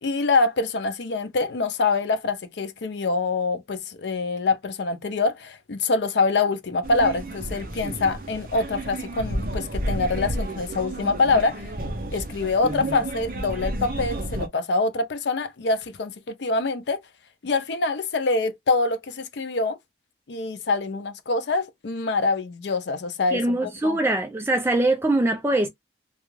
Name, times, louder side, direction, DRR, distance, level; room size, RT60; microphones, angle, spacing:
voice 1, 0.0-11.7 12.1-17.0 17.4-19.8 20.3-23.4 23.8-24.0, left 3 dB, 75° left, 0.5 m, -25 dB
sound 1, 6.8-14.5, right 1 dB, 50° right, 0.7 m, -31 dB
voice 2, 23.3-25.7, right 2 dB, 15° right, 0.3 m, -22 dB
2.3 x 2.3 x 3.1 m
head